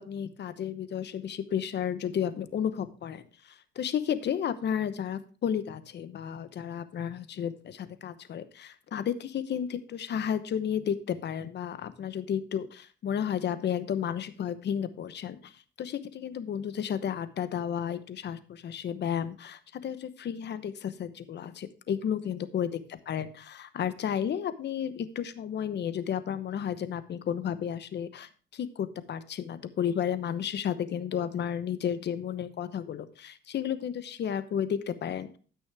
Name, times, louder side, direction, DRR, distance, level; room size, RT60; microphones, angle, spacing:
voice 1, 0.0-22.7 23.1-35.4, left 8 dB, 60° left, 13 dB, 1.0 m, -32 dB
14.5 x 6.2 x 3.4 m, 0.38 s
cardioid pair, 90°, 20 cm